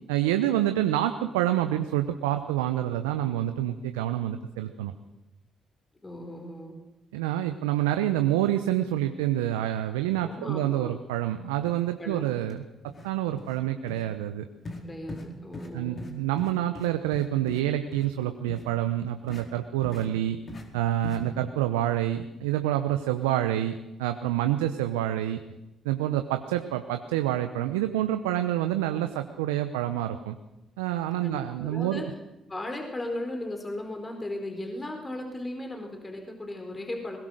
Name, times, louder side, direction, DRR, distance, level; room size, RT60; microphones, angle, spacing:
voice 1, 0.1-4.9 7.1-14.5 15.7-20.4 20.7-25.4 25.8-30.4 30.8-32.0, right 12 dB, 85° right, 8 dB, 0.8 m, -27 dB
voice 2, 6.0-6.8 10.2-11.0 12.0-12.2 14.8-16.2 31.2-32.1 32.5-37.2, left 1 dB, 25° left, 4 dB, 4.5 m, -36 dB
sound 1, 12.4-12.5 12.9-13.1 13.4-13.6 13.9-14.0 14.6-14.8 15.1-15.3 15.5-15.7 16.0-16.1 16.4-17.6 17.9-18.1 18.5-18.6 19.3-19.4 19.8-20.1 20.5-20.6 21.0-21.2, left 2 dB, 45° left, 4.6 m, -40 dB
21.5 x 20.5 x 6.5 m, 0.96 s
hypercardioid pair, 50°, 0 cm